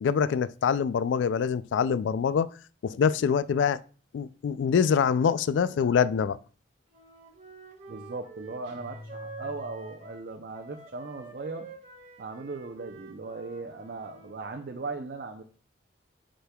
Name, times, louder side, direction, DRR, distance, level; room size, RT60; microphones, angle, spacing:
voice 1, 0.0-2.5 2.8-3.8 4.1-6.4, left 7 dB, 80° left, 0.3 m, -25 dB
Wind instrument woodwind instrument, 6.9-14.3, right 4 dB, 35° right, 1.1 m, -47 dB
voice 2, 7.9-11.7 12.2-15.4, right 3 dB, 55° right, 0.5 m, -38 dB
sound 1, 8.6-10.3, left 1 dB, 75° right, 1.3 m, -47 dB
8.8 x 5.1 x 2.3 m
head